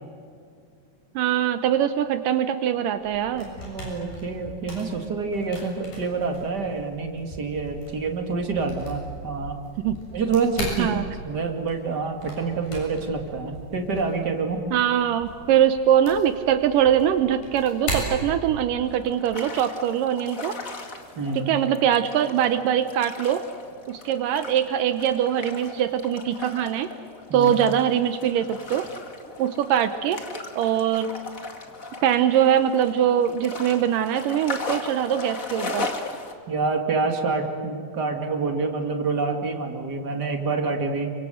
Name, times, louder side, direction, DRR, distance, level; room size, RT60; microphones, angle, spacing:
voice 1, 1.2-3.5 9.8-10.0 10.8-11.1 14.7-20.6 21.4-23.5 23.9-26.9 27.3-28.9 29.4-30.2 30.6-31.1 32.0-35.9, right 10 dB, 75° right, 10 dB, 2.4 m, -22 dB
sound 1, 3.0-18.9, equal, 85° left, 8.7 m, -38 dB
voice 2, 3.3-9.6 10.1-14.6 21.2-21.5 27.3-27.5 36.5-41.1, right 4 dB, 30° right, 4 dB, 2.5 m, -27 dB
sound 2, 18.8-36.3, left 3 dB, 30° left, 1.8 m, -37 dB
30.0 x 25.0 x 7.9 m, 2.2 s
omnidirectional pair, 4.0 m